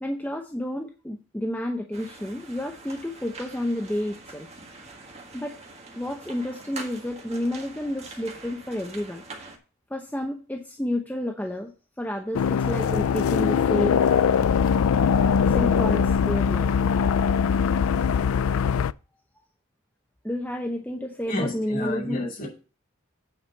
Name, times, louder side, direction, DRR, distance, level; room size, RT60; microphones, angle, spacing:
voice 1, 0.0-4.5 5.3-5.5 5.9-9.2 9.9-11.7 12.0-14.0 15.5-16.7 20.2-22.2, left 1 dB, 10° left, 0.8 m, -30 dB
sound 1, 1.9-9.6, right 3 dB, 30° right, 1.7 m, -44 dB
sound 2, 12.3-18.9, left 6 dB, 90° left, 0.4 m, -22 dB
voice 2, 21.3-22.5, left 1 dB, 45° left, 4.8 m, -31 dB
9.0 x 5.0 x 6.8 m
head